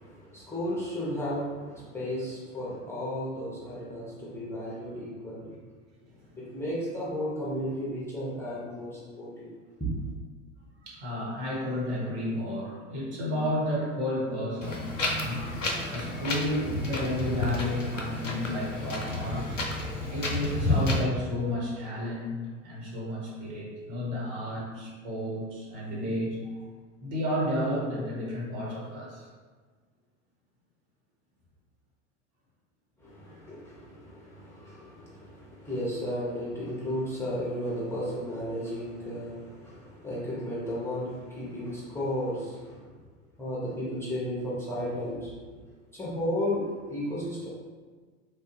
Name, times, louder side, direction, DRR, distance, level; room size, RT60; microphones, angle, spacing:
voice 1, 0.0-5.6 6.4-9.5 9.8-10.0 33.0-42.9 43.4-45.3 45.9-47.5, equal, 5° left, -8 dB, 0.8 m, -34 dB
voice 2, 10.8-14.9 15.1-15.5 15.9-19.6 20.1-22.4 22.6-26.6 27.0-29.2, left 1 dB, 50° right, -5 dB, 1.4 m, -32 dB
Wind, 14.6-21.0, left 2 dB, 90° left, 0.5 m, -31 dB
3.3 x 2.2 x 3.1 m, 1.5 s
figure-of-eight pair, 75°, 37 cm